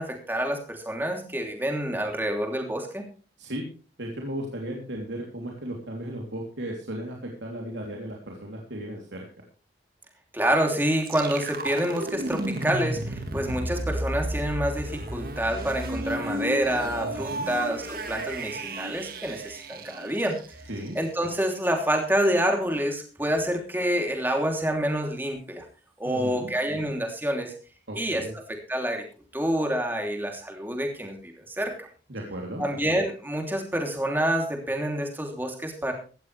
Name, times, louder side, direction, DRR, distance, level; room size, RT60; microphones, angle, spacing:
voice 1, 0.0-3.1 10.3-20.4 20.9-25.6 26.0-27.5 27.9-29.0 29.3-31.9 32.6-35.9, right 1 dB, 10° right, 2 dB, 3.0 m, -27 dB
voice 2, 4.0-9.2 17.0-17.5 20.7-21.0 26.0-26.5 27.9-28.3 32.1-32.6, right 1 dB, 85° right, 0 dB, 3.1 m, -35 dB
sound 1, 11.1-20.9, right 1 dB, 50° right, 1.7 m, -33 dB
17.0 x 14.0 x 3.3 m, 0.38 s
head